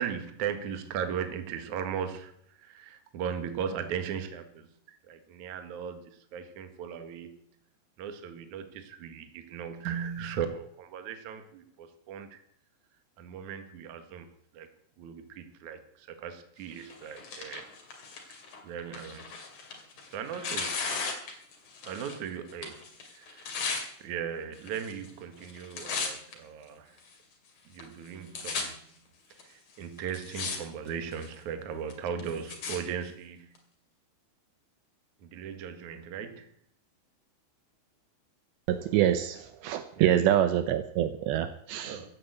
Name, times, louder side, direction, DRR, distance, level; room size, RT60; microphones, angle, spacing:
voice 1, 0.0-4.7 5.1-7.4 8.0-12.4 13.2-14.3 14.5-14.7 15.0-17.7 18.6-19.3 20.1-21.0 21.9-23.7 24.0-27.0 27.7-28.7 29.4-33.5 35.2-36.5 40.0-40.5 41.8-42.0, right 7 dB, 55° right, 2.4 m, -37 dB
Tearing, 16.8-22.2 22.5-23.8 24.6-25.1 25.4-26.3 27.0-27.1 27.8-27.9 28.1-28.6 29.4-29.5 30.0-30.6 30.9-31.3 31.9-32.8 33.6-33.7, left 4 dB, 45° left, 3.5 m, -36 dB
voice 2, 38.7-42.0, right 11 dB, 80° right, 2.8 m, -26 dB
15.5 x 9.2 x 8.1 m
omnidirectional pair, 5.3 m